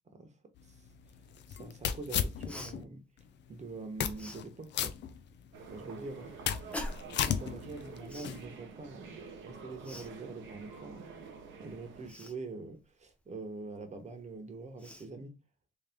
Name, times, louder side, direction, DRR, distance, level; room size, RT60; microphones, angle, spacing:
sound 1, 0.6-2.8 3.2-3.3 3.8-4.4 4.7-5.7 6.1-8.4, left 8 dB, 65° left, 0.5 m, -35 dB
voice 1, 1.5-3.0 3.5-5.0 5.7-6.3 7.2-11.2 11.6-15.4, right 3 dB, 35° right, 1.1 m, -44 dB
Cough, 2.5-2.7 4.2-4.4 6.7-7.2 8.1-8.4 9.8-10.1 12.1-12.4 14.2-14.3 14.8-15.1, left 1 dB, 5° left, 0.8 m, -42 dB
sound 2, 5.5-12.1, right 5 dB, 75° right, 0.9 m, -48 dB
3.3 x 3.0 x 3.4 m
cardioid pair, 90°, 20 cm